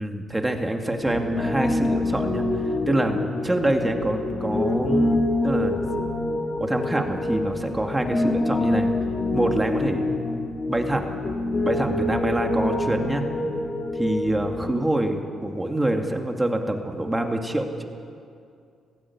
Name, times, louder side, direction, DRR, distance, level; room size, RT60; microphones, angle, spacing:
voice 1, 0.0-5.8 6.6-8.9 9.3-10.1 10.7-11.1 11.6-13.2 13.9-17.9, right 1 dB, 15° right, 3 dB, 2.5 m, -26 dB
Piano, 1.0-14.7, left 2 dB, 40° left, 3.8 m, -26 dB
21.0 x 15.5 x 9.9 m, 2.4 s
cardioid pair, 90°, 0 cm